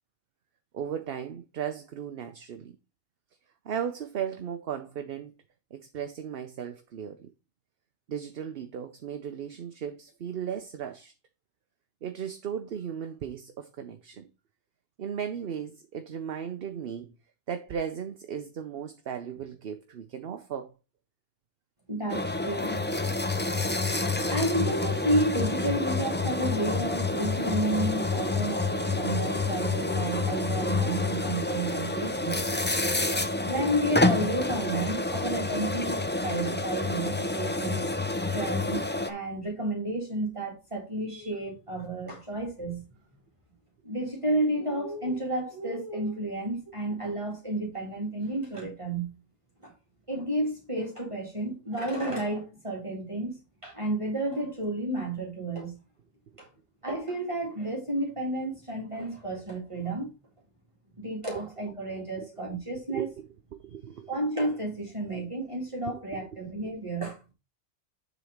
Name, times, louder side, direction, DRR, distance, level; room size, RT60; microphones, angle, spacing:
voice 1, 0.7-2.7 3.6-5.3 5.7-7.3 8.1-11.1 12.0-14.3 15.0-17.1 17.5-20.7 62.1-62.3 62.9-63.1 63.5-64.1 66.1-66.3, right 8 dB, 55° right, 0.9 m, -36 dB
voice 2, 21.9-22.8 24.3-32.4 33.4-37.9 38.3-42.8 43.8-49.1 49.6-49.7 50.1-55.8 56.4-56.5 56.8-60.1 61.0-63.1 64.1-67.2, right 1 dB, 25° right, 2.1 m, -31 dB
sound 1, 22.1-39.1, left 2 dB, 15° left, 0.5 m, -28 dB
7.4 x 4.1 x 5.0 m
omnidirectional pair, 1.2 m